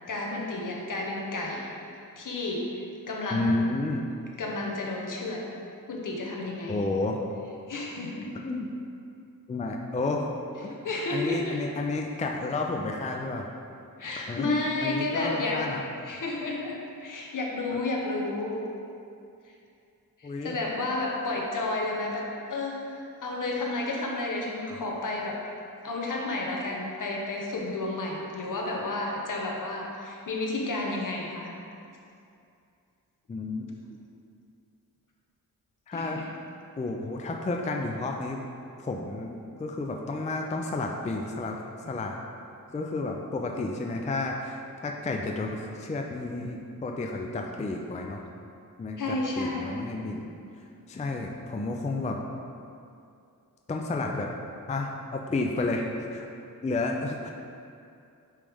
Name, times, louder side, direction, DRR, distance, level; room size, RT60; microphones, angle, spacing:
voice 1, 0.1-1.7 2.2-3.7 4.4-5.4 5.9-6.7 7.7-8.3 10.7-11.6 14.0-15.6 16.0-18.6 20.2-25.4 25.8-31.5 35.9-36.3 49.0-49.9, left 2 dB, 60° left, -1 dB, 1.0 m, -31 dB
voice 2, 3.3-4.0 6.7-7.2 8.4-8.7 9.5-10.3 10.6-10.8 11.1-13.5 14.3-15.8 17.7-17.8 20.2-20.6 33.3-34.0 35.9-36.2 36.8-38.4 38.8-41.6 41.8-42.2 42.7-48.2 48.8-50.3 50.9-52.2 53.7-54.3 54.7-56.2 56.6-57.3, left 2 dB, 20° left, 1 dB, 0.4 m, -31 dB
8.7 x 3.3 x 3.5 m, 2.5 s
wide cardioid pair, 90°, 35 cm